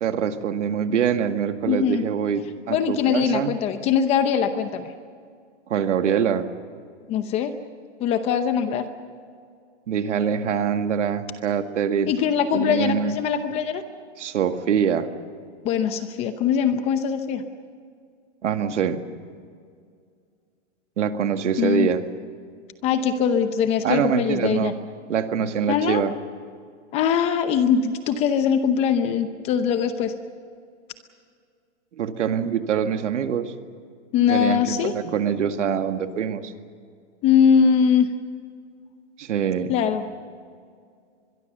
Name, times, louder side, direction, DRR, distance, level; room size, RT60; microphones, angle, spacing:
voice 1, 0.0-3.5 5.7-6.5 9.9-12.1 12.5-13.2 14.2-15.1 18.4-19.0 21.0-22.0 23.8-24.7 25.1-26.1 32.0-33.5 34.3-36.5 39.2-39.7, right 7 dB, 80° right, 7 dB, 2.0 m, -24 dB
voice 2, 1.7-2.0 2.7-4.9 7.1-7.5 8.0-8.9 12.1-13.8 15.6-17.4 21.6-21.9 22.8-24.7 25.7-26.0 26.9-30.1 34.1-34.9 37.2-38.1 39.7-40.0, left 7 dB, 20° left, 9 dB, 0.7 m, -21 dB
24.0 x 22.5 x 6.8 m, 2.2 s
hypercardioid pair, 160°, 35 cm